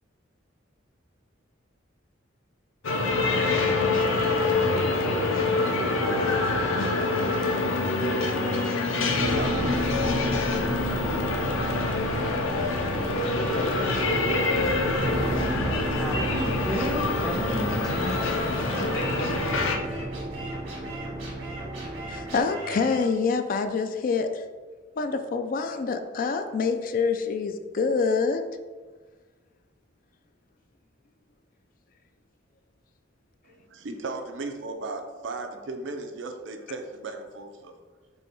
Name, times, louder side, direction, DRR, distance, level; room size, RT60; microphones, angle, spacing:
sound 1, 2.8-19.8, left 3 dB, 85° left, 0.6 m, -26 dB
sound 2, 9.1-22.4, right 1 dB, 35° right, 0.8 m, -33 dB
voice 1, 9.2-10.9 33.4-37.7, right 3 dB, 65° right, 5 dB, 0.5 m, -37 dB
sound 3, 13.3-23.0, right 1 dB, 90° right, 1.5 m, -41 dB
voice 2, 16.0-19.4, equal, ahead, -1 dB, 0.6 m, -33 dB
voice 3, 22.1-24.4 25.0-28.4, left 4 dB, 45° left, 8 dB, 0.3 m, -26 dB
5.4 x 2.2 x 4.3 m, 1.4 s
head